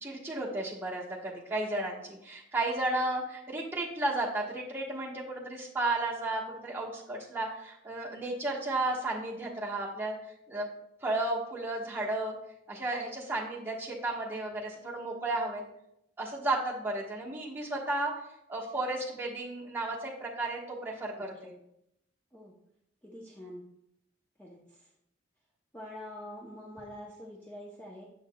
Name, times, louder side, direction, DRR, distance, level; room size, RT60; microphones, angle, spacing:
voice 1, 0.0-10.1 10.5-10.7 11.0-12.3 12.7-15.6 16.2-18.1 18.5-21.5, right 2 dB, 15° right, -4 dB, 1.2 m, -33 dB
voice 2, 23.0-23.6 24.4-24.9 25.7-28.1, left 1 dB, 10° left, -4 dB, 0.6 m, -45 dB
7.3 x 6.5 x 2.2 m, 0.79 s
head